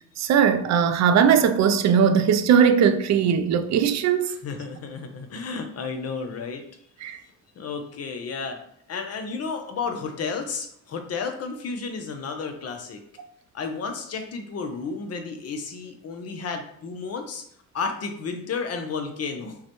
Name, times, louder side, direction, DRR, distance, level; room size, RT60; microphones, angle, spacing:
voice 1, 0.2-4.3 7.0-7.2, right 7 dB, 65° right, 0.5 m, -19 dB
voice 2, 4.2-6.6 7.0-7.1 7.6-8.6 8.9-13.0 13.5-17.4 17.7-19.6, left 5 dB, 55° left, 0.7 m, -32 dB
5.5 x 2.2 x 3.0 m
cardioid pair, 90°, 30 cm